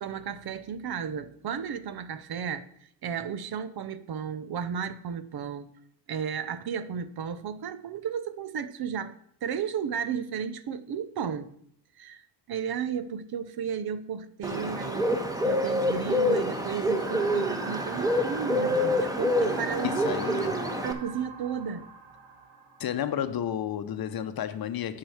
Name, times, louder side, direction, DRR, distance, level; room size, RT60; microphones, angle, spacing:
voice 1, 0.0-5.7 6.1-9.1 9.4-11.5 12.0-20.0 20.4-20.5 20.8-21.9, right 7 dB, 50° right, 0.8 m, -34 dB
Bird, 14.4-20.9, left 1 dB, 5° right, 1.3 m, -27 dB
sound 1, 17.0-22.9, right 3 dB, 75° right, 2.2 m, -43 dB
voice 2, 19.8-20.7 22.8-25.0, left 10 dB, 50° left, 0.9 m, -32 dB
8.7 x 4.8 x 7.2 m
supercardioid pair, 70°, 48 cm